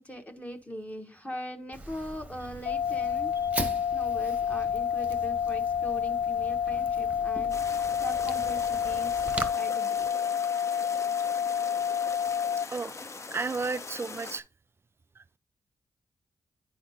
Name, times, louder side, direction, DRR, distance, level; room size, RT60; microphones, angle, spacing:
voice 1, 0.0-3.3 3.9-10.1, equal, 20° left, 1.1 m, -41 dB
Fire, 1.7-9.5, right 2 dB, 20° right, 0.8 m, -40 dB
sound 1, 2.7-12.7, left 8 dB, 75° left, 0.4 m, -29 dB
sound 2, 7.5-14.4, left 3 dB, 45° left, 0.7 m, -42 dB
voice 2, 13.3-14.4 15.2-15.3, right 4 dB, 35° right, 0.3 m, -32 dB
9.8 x 4.3 x 2.7 m
cardioid pair, 50°, 7 cm